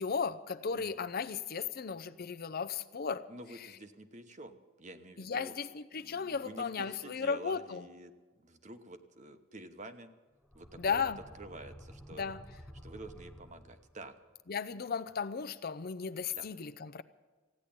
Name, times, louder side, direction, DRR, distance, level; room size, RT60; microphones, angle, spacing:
voice 1, 0.0-3.3 5.2-7.8 10.8-11.2 12.2-12.4 14.5-17.0, left 5 dB, 50° left, 11 dB, 0.6 m, -35 dB
voice 2, 0.7-1.0 3.3-5.5 5.9-8.1 8.4-10.1 10.5-12.3 12.8-14.2 16.3-16.5, right 1 dB, 35° right, 9 dB, 1.0 m, -49 dB
sound 1, 10.4-14.2, equal, 5° left, 0.9 m, -52 dB
15.5 x 9.9 x 8.7 m, 1.3 s
head